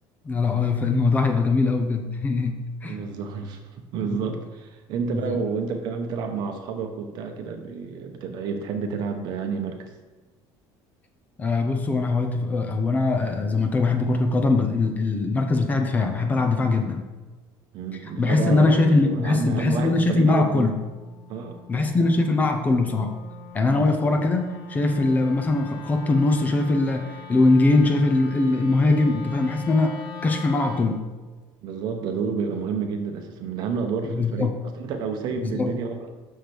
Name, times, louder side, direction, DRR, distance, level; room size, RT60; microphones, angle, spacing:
voice 1, 0.2-3.0 4.0-4.2 5.1-5.4 11.4-17.1 18.2-20.7 21.7-23.1 23.5-31.0 34.0-34.5 35.4-35.7, left 3 dB, 15° left, 5 dB, 0.5 m, -22 dB
voice 2, 2.8-9.9 17.7-20.7 21.3-21.6 23.6-24.1 31.6-34.5 34.7-36.1, right 5 dB, 50° right, 5 dB, 1.0 m, -30 dB
Wind instrument woodwind instrument, 19.4-31.0, left 6 dB, 55° left, 0.9 m, -42 dB
6.5 x 5.1 x 6.0 m, 1.2 s
cardioid pair, 170°, 9 cm